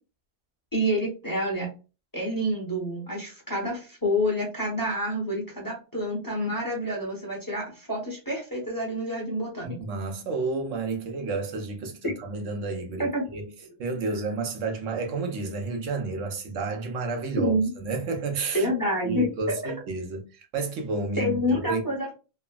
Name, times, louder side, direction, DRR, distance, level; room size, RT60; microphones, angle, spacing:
voice 1, 0.7-1.7 2.1-9.8 13.0-13.2 17.4-17.7 18.5-19.6 21.2-22.1, equal, 20° left, 0.7 m, -28 dB
voice 2, 9.6-13.4 13.8-17.5 17.8-18.7 19.0-21.8, right 3 dB, 85° right, 1.0 m, -31 dB
3.4 x 2.0 x 2.2 m
omnidirectional pair, 1.3 m